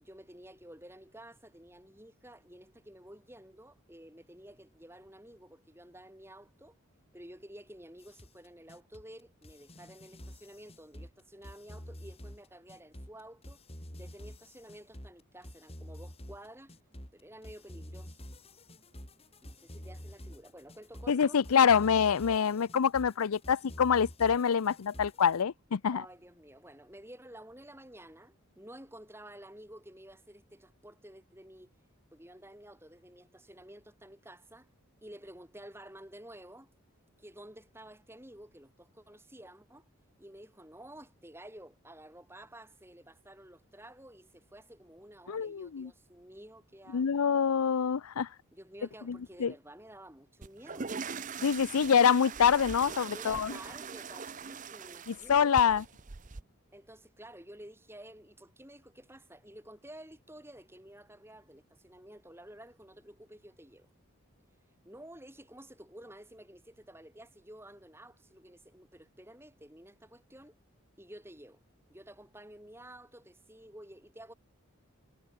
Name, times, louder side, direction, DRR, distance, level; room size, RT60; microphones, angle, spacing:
voice 1, 0.0-6.8 7.1-13.6 13.9-16.8 17.1-18.2 19.4-21.4 25.9-31.7 32.1-34.7 35.0-36.7 37.2-39.9 40.2-47.2 48.5-51.0 53.1-55.8 56.7-63.9 64.8-70.6 71.0-71.6 71.9-74.3, right 1 dB, 10° right, 7.1 m, -52 dB
sound 1, 8.0-25.4, equal, 25° left, 6.8 m, -48 dB
voice 2, 21.1-26.0 45.3-45.9 46.9-48.3 49.1-49.5 51.4-53.5 55.1-55.8, left 7 dB, 90° left, 0.5 m, -26 dB
sound 2, 50.4-56.4, right 5 dB, 35° right, 0.7 m, -42 dB
head